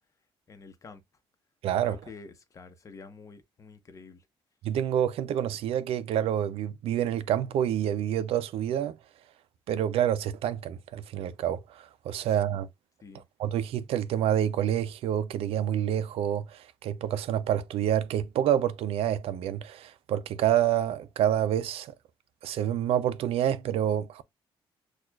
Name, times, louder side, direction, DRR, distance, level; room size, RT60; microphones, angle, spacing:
voice 1, 0.5-1.0 1.8-4.3 12.3-12.4 13.0-13.2, left 4 dB, 30° left, 0.8 m, -48 dB
voice 2, 1.6-2.0 4.6-9.0 9.7-12.7 13.4-21.9 22.4-24.2, right 10 dB, 75° right, 0.4 m, -28 dB
6.2 x 2.4 x 2.3 m
cardioid pair, 140°, 10 cm